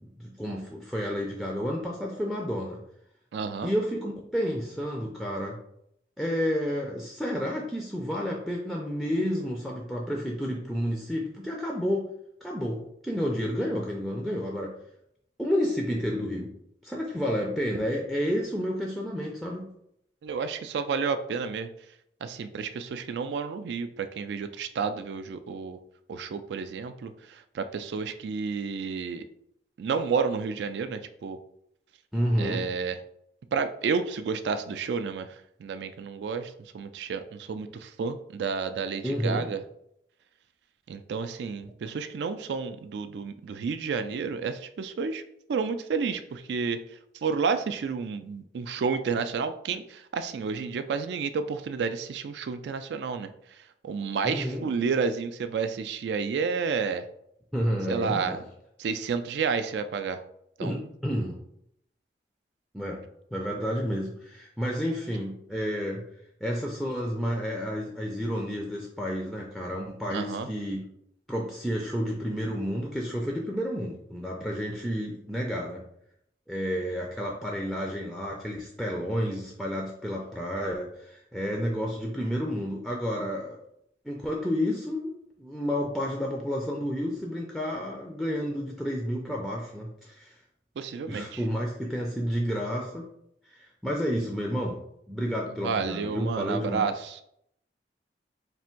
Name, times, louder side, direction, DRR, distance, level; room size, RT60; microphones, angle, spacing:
voice 1, 0.0-2.8 3.6-5.6 6.2-12.1 12.4-14.8 15.4-16.5 16.8-19.7 32.1-32.7 39.0-39.5 54.2-54.7 57.5-58.4 60.6-61.4 62.7-63.0 63.3-66.0 66.4-70.9 71.3-75.8 76.5-83.6 84.0-85.1 85.4-90.4 91.1-93.1 93.5-96.9, equal, ahead, -1 dB, 0.4 m, -30 dB
voice 2, 3.3-3.7 20.2-21.7 22.2-25.8 26.1-29.3 29.8-31.4 32.4-33.0 33.5-39.6 40.9-45.2 45.5-46.8 47.2-53.6 53.8-57.0 57.9-58.4 58.8-60.2 60.6-60.8 70.1-70.5 90.8-91.4 95.6-97.2, right 5 dB, 75° right, 9 dB, 0.3 m, -31 dB
3.4 x 2.5 x 4.4 m, 0.73 s
head